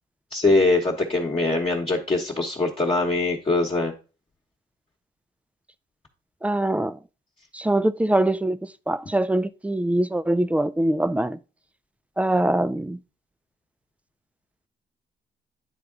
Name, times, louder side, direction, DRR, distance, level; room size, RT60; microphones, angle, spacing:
voice 1, 0.3-3.9, left 2 dB, 30° left, 1.1 m, -22 dB
voice 2, 6.4-7.0 7.5-11.4 12.2-13.0, right 1 dB, 5° right, 0.3 m, -23 dB
9.5 x 3.6 x 3.7 m
cardioid pair, 90°, 20 cm